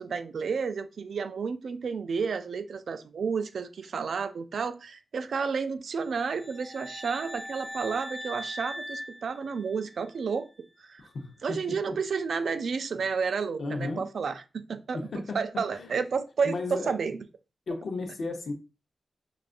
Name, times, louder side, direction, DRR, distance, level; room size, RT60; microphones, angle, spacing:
voice 1, 0.0-10.5 10.8-11.0 11.4-15.0 15.3-17.2, right 5 dB, 75° right, 0.3 m, -31 dB
sound 1, 6.1-10.1, equal, 5° left, 0.3 m, -41 dB
voice 2, 11.0-11.9 13.6-14.1 14.9-16.0 16.4-16.9 17.7-18.5, left 3 dB, 70° left, 0.7 m, -35 dB
4.7 x 2.4 x 2.4 m
wide cardioid pair, 130°, 0 cm